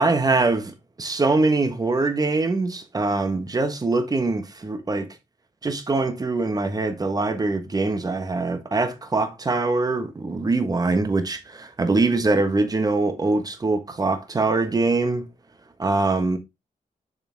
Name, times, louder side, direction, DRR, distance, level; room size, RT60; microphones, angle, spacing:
voice 1, 0.0-5.1 5.6-15.3 15.8-16.4, right 3 dB, 25° right, 1.3 m, -23 dB
6.7 x 6.7 x 3.5 m
wide cardioid pair, 170°, 15 cm